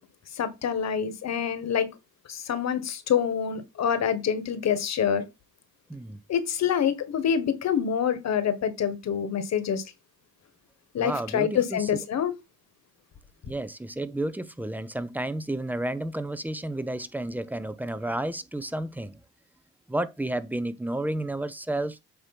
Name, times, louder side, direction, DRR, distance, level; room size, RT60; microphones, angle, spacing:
voice 1, 0.3-1.9 2.3-5.2 6.3-9.8 10.9-12.3, left 8 dB, 60° left, 1.5 m, -26 dB
voice 2, 11.0-11.9 13.5-19.2 19.9-22.0, right 1 dB, 5° right, 0.8 m, -31 dB
8.2 x 3.1 x 6.0 m
cardioid pair, 90°, 30 cm